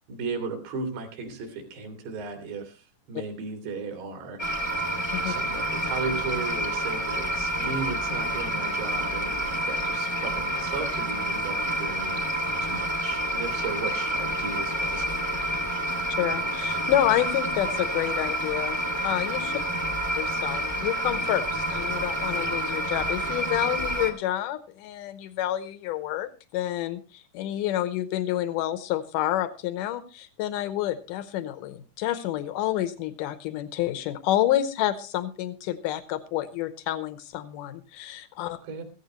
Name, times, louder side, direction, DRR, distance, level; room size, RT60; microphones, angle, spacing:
voice 1, 0.1-4.4 5.2-12.2 12.6-15.8 19.7-19.8 38.6-38.8, right 4 dB, 75° right, 5 dB, 4.9 m, -36 dB
sound 1, 4.4-24.1, right 1 dB, 20° left, 0.7 m, -28 dB
voice 2, 16.2-19.6 20.2-38.6, left 13 dB, 90° left, 12 dB, 1.8 m, -29 dB
16.5 x 15.0 x 3.1 m, 0.30 s
omnidirectional pair, 4.9 m